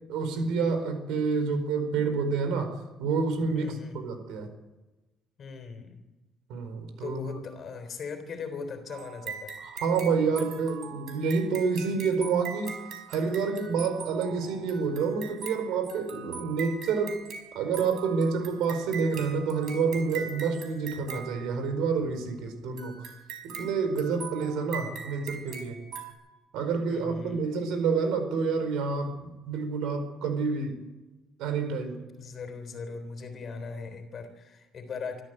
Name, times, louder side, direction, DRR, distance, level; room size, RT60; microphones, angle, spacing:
voice 1, 0.1-4.5 6.5-7.4 9.6-12.8 13.1-17.2 17.5-23.0 23.4-25.8 26.5-30.8 31.4-32.0, right 5 dB, 85° right, 8 dB, 4.7 m, -28 dB
voice 2, 3.5-4.0 5.4-6.0 7.0-9.6 26.9-27.5 32.2-35.2, left 5 dB, 35° left, 8 dB, 3.6 m, -39 dB
sound 1, 8.9-22.0 22.8-26.1, right 6 dB, 55° right, 5.0 m, -42 dB
24.5 x 14.0 x 7.8 m, 1.1 s
cardioid pair, 170°, 0 cm